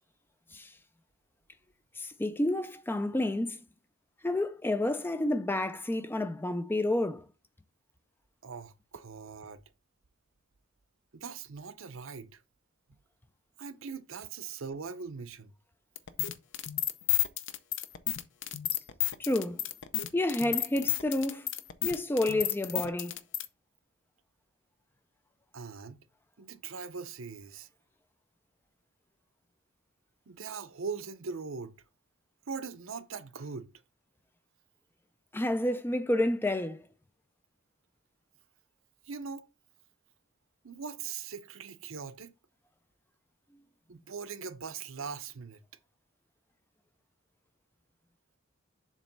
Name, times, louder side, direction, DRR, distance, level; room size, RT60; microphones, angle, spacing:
voice 1, 2.0-3.6 4.2-7.3 18.7-18.8 19.2-19.6 20.1-21.5 21.8-23.2 35.3-36.8, left 1 dB, 10° left, 0.3 m, -30 dB
voice 2, 8.4-9.6 11.1-12.4 13.6-15.5 25.5-26.0 26.4-27.7 30.3-31.8 32.5-33.7 39.0-39.5 40.6-42.3 43.9-45.6, right 5 dB, 65° right, 0.7 m, -41 dB
sound 1, 16.0-23.5, left 13 dB, 55° left, 0.6 m, -31 dB
7.3 x 3.1 x 5.3 m
head